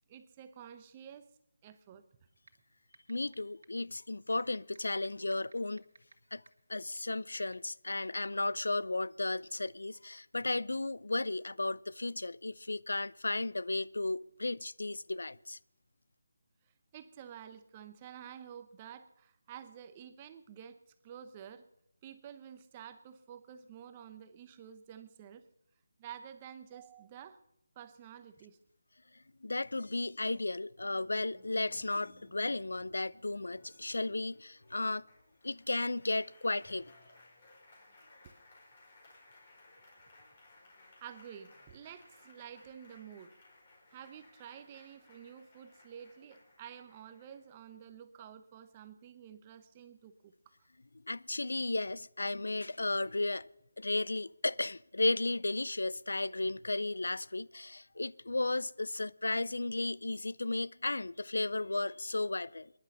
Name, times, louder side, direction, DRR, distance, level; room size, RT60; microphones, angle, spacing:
voice 1, 0.1-1.2 1.6-2.0 16.9-20.8 21.0-21.7 22.0-25.5 26.0-27.4 27.8-28.6 41.0-43.3 43.9-50.3, right 9 dB, 20° right, 0.8 m, -50 dB
sound 1, 2.5-2.6 2.9-3.3 3.6-3.7 4.4-6.1 6.5-6.6 7.4-7.5, right 4 dB, 60° right, 1.8 m, -54 dB
voice 2, 3.1-5.8 6.3-6.4 6.7-15.6 29.4-35.0 35.4-36.9 51.0-53.5 53.8-62.7, left 2 dB, 85° left, 0.5 m, -34 dB
Applause, 30.9-47.9, left 2 dB, 30° left, 4.8 m, -62 dB
22.0 x 10.5 x 5.4 m
figure-of-eight pair, 170°, 0 cm